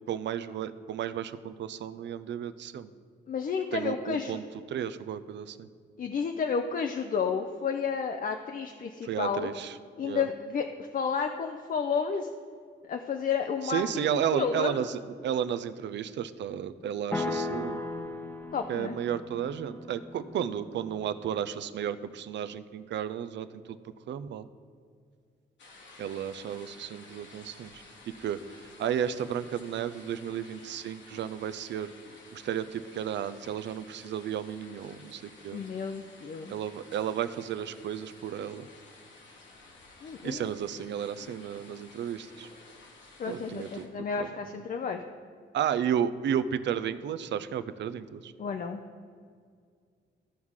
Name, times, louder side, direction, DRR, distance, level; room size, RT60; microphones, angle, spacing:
voice 1, 0.1-2.9 3.7-4.4 4.7-5.7 9.0-9.8 10.0-10.3 13.6-17.8 18.7-23.8 24.1-24.5 26.0-31.9 32.3-35.6 36.5-38.7 40.2-42.5 43.3-43.8 44.2-44.5 45.5-48.3, right 9 dB, 70° right, 13 dB, 0.4 m, -33 dB
voice 2, 3.3-4.4 6.0-9.5 10.0-12.3 12.8-14.8 18.5-18.9 35.5-36.5 40.0-40.5 43.2-45.0 48.4-48.8, left 6 dB, 45° left, 5 dB, 0.5 m, -31 dB
sound 1, 17.1-21.2, left 2 dB, 10° left, 0.8 m, -37 dB
sound 2, 25.6-43.9, left 3 dB, 75° left, 1.5 m, -53 dB
14.0 x 4.7 x 3.7 m, 2.1 s
cardioid pair, 90°, 19 cm